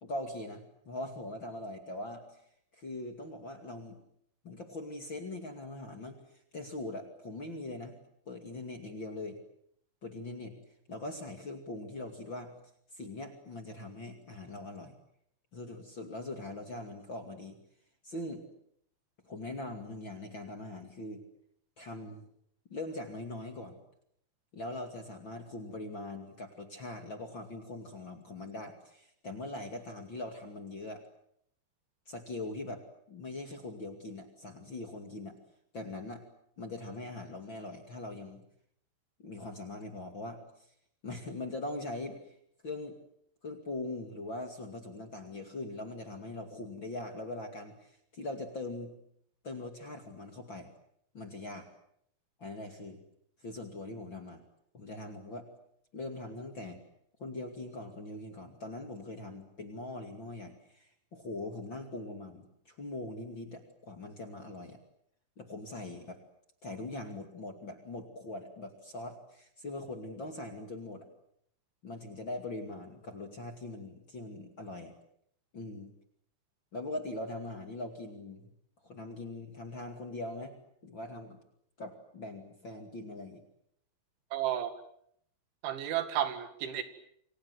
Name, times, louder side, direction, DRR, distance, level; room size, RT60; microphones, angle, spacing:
voice 1, 0.0-2.4 2.7-4.0 4.4-6.2 6.5-7.9 8.3-9.4 10.0-12.5 12.9-14.9 15.5-17.6 18.0-18.4 19.2-21.2 21.8-22.2 22.7-23.8 24.5-31.0 32.1-35.3 35.7-36.2 36.6-38.4 39.2-40.7 41.0-42.4 42.6-43.0 43.4-48.9 49.4-50.7 51.1-51.7 52.4-53.0 53.4-54.4 54.7-55.5 55.9-56.8 57.2-64.8 65.4-66.2 66.6-71.1 71.8-74.9 75.5-75.9 76.7-78.5 78.8-80.5 80.8-81.4 81.8-83.4, left 2 dB, 35° left, 5 dB, 2.3 m, -41 dB
voice 2, 84.3-84.7 85.6-86.8, right 11 dB, 90° right, 10 dB, 4.6 m, -32 dB
29.0 x 25.5 x 8.0 m, 0.70 s
omnidirectional pair, 5.3 m